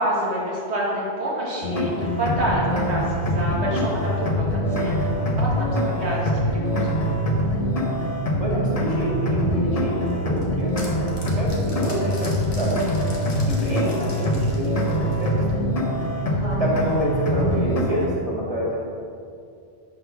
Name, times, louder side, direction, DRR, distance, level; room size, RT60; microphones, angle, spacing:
voice 1, 0.0-5.1 5.4-7.1 16.2-16.6, right 1 dB, 80° right, -4 dB, 2.1 m, -28 dB
sound 1, 1.6-18.1, equal, 35° left, 1.0 m, -24 dB
voice 2, 8.3-10.7 11.1-13.0 13.5-15.4 16.6-18.8, equal, 35° right, -6 dB, 2.3 m, -28 dB
sound 2, 10.1-15.6, left 2 dB, 75° left, 1.7 m, -42 dB
8.9 x 4.3 x 6.0 m, 2.4 s
omnidirectional pair, 1.1 m